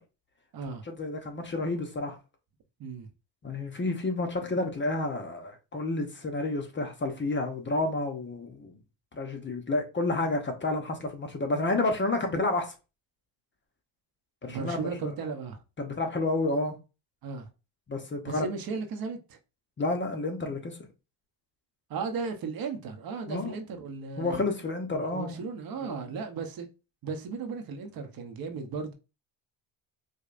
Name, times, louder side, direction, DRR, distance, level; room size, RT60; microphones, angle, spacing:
voice 1, 0.9-2.2 3.4-8.8 9.1-12.7 14.4-15.1 15.8-16.7 17.9-18.5 19.8-20.8 23.3-23.6 24.2-25.4 25.8-26.2, left 2 dB, 25° left, 0.7 m, -30 dB
voice 2, 14.5-15.6 17.2-17.5 18.2-19.4 21.9-24.4 24.9-26.7 27.0-28.9, right 5 dB, 50° right, 0.8 m, -35 dB
4.9 x 2.2 x 2.5 m
cardioid pair, 95°, 46 cm